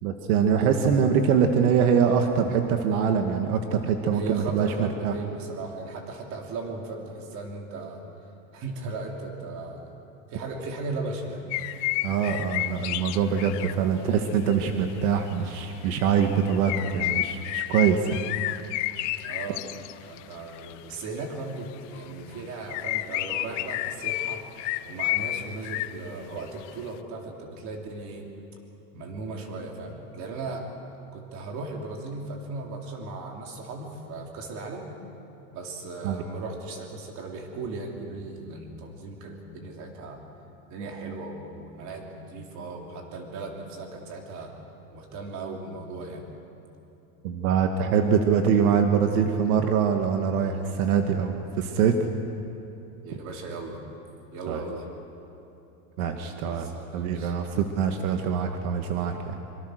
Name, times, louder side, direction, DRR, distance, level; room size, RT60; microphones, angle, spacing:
voice 1, 0.0-5.1 12.0-18.2 36.0-36.2 47.2-52.0 54.5-54.6 56.0-59.4, right 7 dB, 80° right, 5 dB, 1.8 m, -24 dB
voice 2, 4.1-8.0 8.5-10.0 10.3-11.4 19.2-19.6 20.1-24.4 24.8-28.3 28.9-30.7 31.1-34.9 35.5-40.2 40.7-44.5 44.9-46.2 53.0-53.8 54.3-54.9 56.4-57.3, right 3 dB, 40° right, 1 dB, 3.5 m, -37 dB
sound 1, 11.5-13.7 14.1-14.5 14.9-15.3 15.8-20.9 22.0-22.4 22.7-25.9 26.4-26.7, left 17 dB, 55° left, 0.7 m, -31 dB
25.0 x 24.5 x 6.5 m, 3.0 s
supercardioid pair, 165°, 43 cm